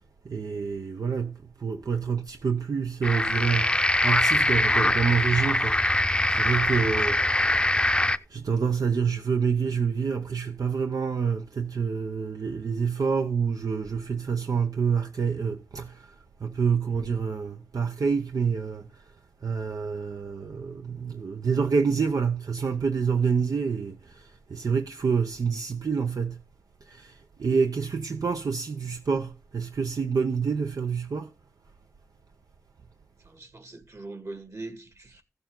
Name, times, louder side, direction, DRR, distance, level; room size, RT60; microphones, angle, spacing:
voice 1, 0.2-7.7 8.3-19.1 19.4-26.4 26.8-31.3, right 6 dB, 85° right, 0.7 m, -27 dB
sound 1, 3.0-8.2, left 1 dB, 15° left, 0.6 m, -23 dB
voice 2, 33.2-35.2, right 2 dB, 55° right, 2.2 m, -41 dB
15.5 x 7.0 x 3.8 m
wide cardioid pair, 55°, 6 cm